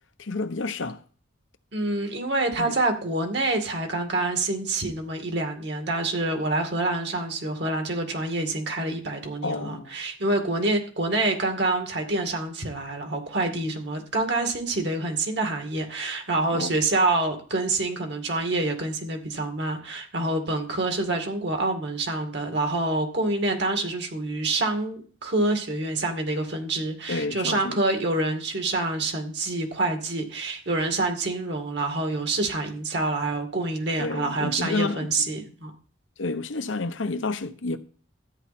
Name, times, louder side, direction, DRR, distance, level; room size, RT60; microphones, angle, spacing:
voice 1, 0.2-1.0 2.6-2.7 9.4-10.0 13.6-13.8 16.5-16.7 27.1-27.8 34.0-35.4 36.2-37.8, left 3 dB, 80° left, 0.9 m, -30 dB
voice 2, 1.7-35.7, right 2 dB, 60° right, 2.2 m, -27 dB
13.5 x 9.6 x 4.3 m
head